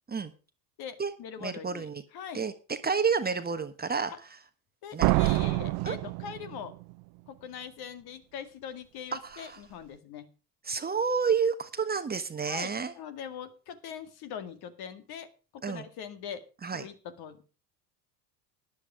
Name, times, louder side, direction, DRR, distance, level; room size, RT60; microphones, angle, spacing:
voice 1, 0.8-2.4 4.1-4.2 4.8-6.7 7.3-10.3 12.4-16.4 16.7-17.4, left 8 dB, 50° left, 10 dB, 2.0 m, -42 dB
voice 2, 1.4-2.0 2.3-4.1 4.9-5.1 5.8-6.0 9.1-9.6 10.6-12.9 15.6-15.9 16.6-16.8, right 5 dB, 20° right, 10 dB, 1.2 m, -30 dB
Slam, 5.0-6.9, right 23 dB, 50° right, 0.6 m, -26 dB
13.5 x 10.0 x 4.8 m, 0.34 s
hypercardioid pair, 75°, 49 cm